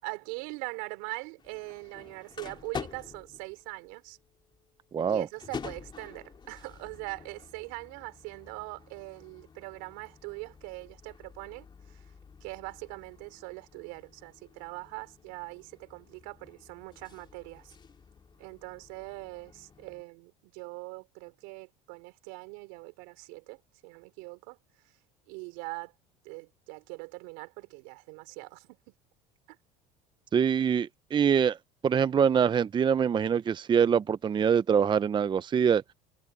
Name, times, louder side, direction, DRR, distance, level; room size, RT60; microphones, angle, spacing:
voice 1, 0.0-4.2 5.1-11.7 11.9-12.0 12.4-17.7 18.4-24.6 25.3-25.9 26.2-28.7 29.5-29.6, right 30 dB, 75° right, 4.3 m, -42 dB
sound 1, 1.4-20.0, left 5 dB, 25° left, 3.1 m, -48 dB
voice 2, 4.9-5.3 30.3-31.6 31.8-35.9, right 7 dB, 25° right, 0.6 m, -24 dB
supercardioid pair, 95°, 17 cm